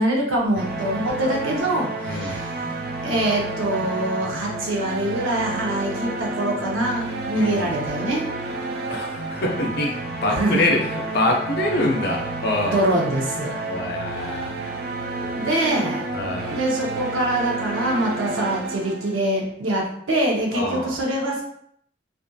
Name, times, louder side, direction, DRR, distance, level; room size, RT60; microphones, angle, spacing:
voice 1, 0.0-2.8 3.0-8.3 10.3-10.7 12.7-13.6 15.3-16.0 16.5-21.4, right 1 dB, 90° right, -1 dB, 0.7 m, -24 dB
sound 1, 0.5-19.5, right 2 dB, 50° right, 0.4 m, -30 dB
voice 2, 2.0-2.4 7.3-7.7 8.9-12.8 13.7-14.5 15.2-15.3 16.1-16.6 20.5-20.9, left 2 dB, 55° left, 0 dB, 0.5 m, -25 dB
2.6 x 2.4 x 2.3 m, 0.67 s
head